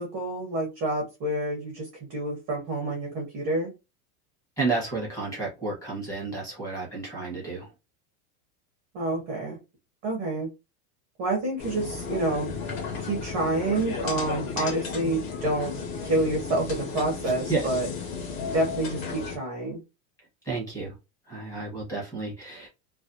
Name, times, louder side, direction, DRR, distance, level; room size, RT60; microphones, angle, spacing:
voice 1, 0.0-3.7 8.9-9.6 10.0-10.5 11.2-12.5 13.0-15.7 16.0-17.9 18.5-19.8, right 2 dB, 20° right, 0 dB, 0.4 m, -28 dB
voice 2, 4.6-7.7 14.5-14.7 17.2-17.7 20.4-21.0 21.2-22.7, right 3 dB, 5° left, -6 dB, 0.7 m, -31 dB
sound 1, 11.6-19.4, left 5 dB, 55° left, 1.1 m, -34 dB
2.4 x 2.3 x 2.4 m, 0.26 s
supercardioid pair, 165°, 46 cm